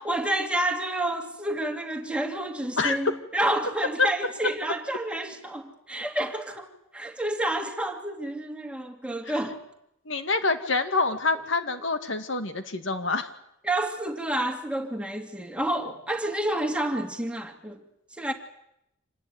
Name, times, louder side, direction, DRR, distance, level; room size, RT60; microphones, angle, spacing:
voice 1, 0.0-9.6 13.6-17.8 18.2-18.3, right 1 dB, 5° right, 2.5 m, -29 dB
voice 2, 10.1-13.3, left 3 dB, 65° left, 2.1 m, -26 dB
26.5 x 19.5 x 9.5 m
head